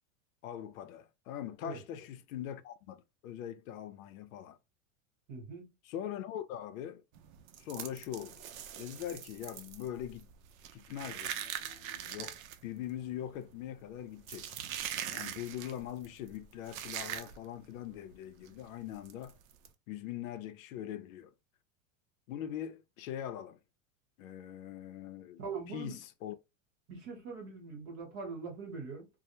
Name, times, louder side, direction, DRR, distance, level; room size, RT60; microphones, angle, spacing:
voice 1, 0.4-4.6 5.9-7.0 7.6-8.4 8.8-10.3 10.7-12.4 12.6-14.5 15.1-19.4 19.9-21.3 22.3-23.6 24.2-25.4 25.7-26.4, left 11 dB, 85° left, 0.5 m, -42 dB
voice 2, 5.3-5.7 25.4-26.0 26.9-29.1, right 4 dB, 35° right, 0.9 m, -42 dB
sound 1, 7.2-17.7 17.9-18.1 18.4-18.6 19.1-19.7, right 10 dB, 85° right, 0.5 m, -42 dB
2.1 x 2.0 x 2.8 m
supercardioid pair, 165°, 40 cm